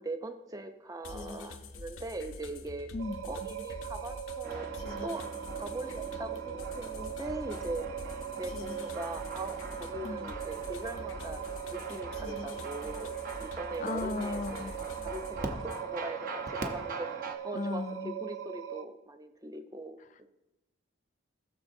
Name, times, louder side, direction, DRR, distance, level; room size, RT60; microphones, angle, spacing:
voice 1, 0.0-2.9 3.2-4.7 5.0-5.2 5.5-7.9 8.4-11.4 11.7-17.1 17.4-20.3, right 2 dB, 15° right, 7 dB, 0.6 m, -41 dB
sound 1, 1.0-15.8, left 3 dB, 90° left, 0.7 m, -45 dB
sound 2, 3.0-18.8, right 10 dB, 65° right, 0.5 m, -40 dB
sound 3, 4.4-17.4, right 3 dB, 45° right, 0.9 m, -43 dB
voice 2, 13.8-14.7 15.0-15.1 17.5-18.2, left 3 dB, 40° left, 12 dB, 0.3 m, -35 dB
18.5 x 6.5 x 2.7 m, 1.0 s
head